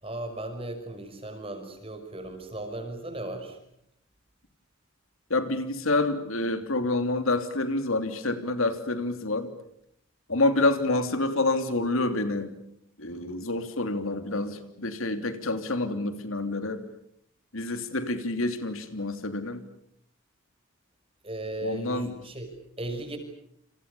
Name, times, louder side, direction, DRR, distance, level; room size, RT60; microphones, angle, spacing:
voice 1, 0.0-3.6 21.2-23.2, right 1 dB, 25° right, 7 dB, 6.0 m, -36 dB
voice 2, 5.3-9.5 10.3-12.5 13.0-16.8 17.5-19.6 21.6-22.1, left 2 dB, 75° left, 8 dB, 3.1 m, -27 dB
29.5 x 28.0 x 7.0 m, 0.72 s
head